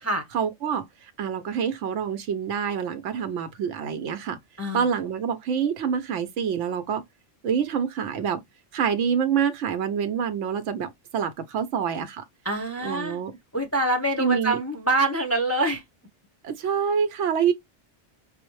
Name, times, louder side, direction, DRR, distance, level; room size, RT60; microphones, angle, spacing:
voice 1, 0.3-4.4 4.7-7.0 7.4-8.4 8.7-12.2 12.8-13.3 14.2-14.6 16.4-17.5, right 7 dB, 90° right, 1.0 m, -26 dB
voice 2, 12.4-13.2 13.5-15.8, right 2 dB, 15° left, 0.6 m, -25 dB
5.3 x 2.0 x 3.0 m
omnidirectional pair, 1.2 m